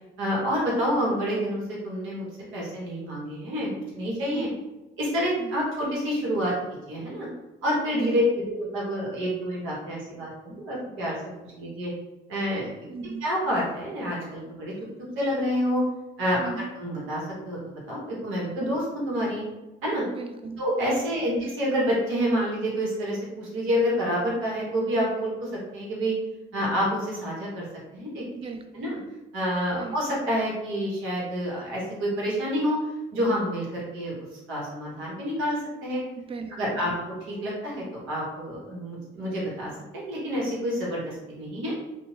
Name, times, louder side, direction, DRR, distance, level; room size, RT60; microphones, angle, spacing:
voice 1, 0.2-2.3 2.5-4.5 5.0-6.5 6.9-7.3 7.6-11.2 11.6-11.9 12.3-12.7 13.2-14.7 15.2-15.8 16.2-16.4 16.8-17.6 17.9-19.4 19.8-20.1 20.6-26.1 26.5-27.7 27.9-28.2 28.7-29.0 29.3-32.8 33.1-36.0 36.6-36.9 37.3-41.7, equal, 85° right, -4 dB, 1.1 m, -28 dB
voice 2, 12.9-13.2 16.4-16.7 20.1-20.6 28.3-28.6 29.7-30.0 36.1-37.0, right 4 dB, 30° right, 7 dB, 0.3 m, -37 dB
2.7 x 2.1 x 3.1 m, 1.1 s
cardioid pair, 90°, 20 cm